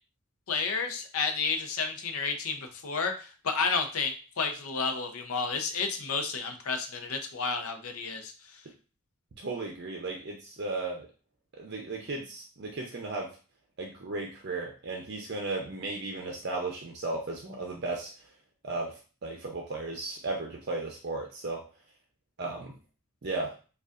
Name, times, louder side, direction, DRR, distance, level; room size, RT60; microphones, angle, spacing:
voice 1, 0.5-8.3, left 5 dB, 90° left, 6 dB, 0.6 m, -31 dB
voice 2, 9.4-11.1 11.6-13.4 13.8-18.3 18.6-21.7 22.4-22.8 23.2-23.6, right 3 dB, 50° right, 0 dB, 0.6 m, -35 dB
5.0 x 2.4 x 2.4 m, 0.36 s
head